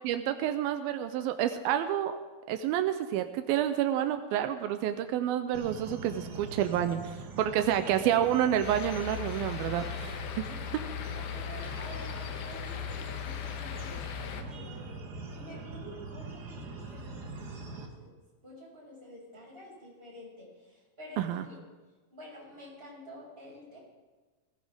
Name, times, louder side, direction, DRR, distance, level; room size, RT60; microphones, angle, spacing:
voice 1, 0.0-2.2 2.5-7.0 7.4-10.1 21.2-21.5, right 11 dB, 85° right, 8 dB, 2.5 m, -29 dB
sound 1, 5.5-17.9, right 3 dB, 50° right, 1.2 m, -43 dB
sound 2, 8.6-14.4, left 9 dB, 85° left, 2.9 m, -38 dB
voice 2, 10.4-18.1 18.4-21.6 22.1-23.8, equal, 15° right, -6 dB, 6.4 m, -50 dB
19.5 x 17.0 x 3.6 m, 1.3 s
omnidirectional pair, 4.2 m